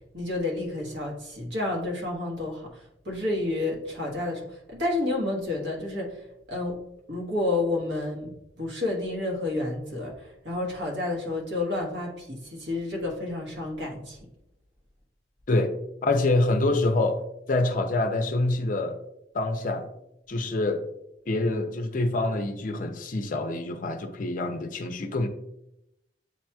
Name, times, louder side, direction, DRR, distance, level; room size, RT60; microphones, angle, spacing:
voice 1, 0.1-2.7 3.0-4.4 4.7-6.1 6.5-6.8 7.1-10.1 10.4-14.2, left 2 dB, 70° right, -1 dB, 1.3 m, -30 dB
voice 2, 16.0-17.2 17.5-19.0 19.3-19.9 20.3-20.8 21.3-25.3, left 2 dB, 45° left, 7 dB, 0.5 m, -26 dB
7.9 x 2.9 x 2.3 m, 0.82 s
head